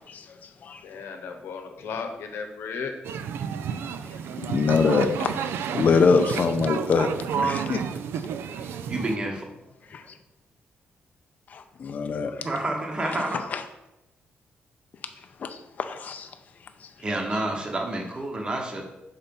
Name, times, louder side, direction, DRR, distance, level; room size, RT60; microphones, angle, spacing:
voice 1, 0.1-0.8 4.4-5.4 5.7-7.1 7.4-7.8 9.9-10.0 11.8-12.4 13.5-13.6 15.4-16.3, left 5 dB, 40° left, 7 dB, 0.4 m, -24 dB
voice 2, 0.8-2.9 8.9-9.0, left 5 dB, 85° left, 6 dB, 0.9 m, -35 dB
sound 1, 3.0-9.2, right 7 dB, 85° right, 0.4 m, -30 dB
voice 3, 8.9-9.4 10.0-10.1 12.4-13.4 17.0-18.9, right 2 dB, 25° right, 2 dB, 0.9 m, -29 dB
5.8 x 4.1 x 5.2 m, 0.95 s
wide cardioid pair, 155°, 4 cm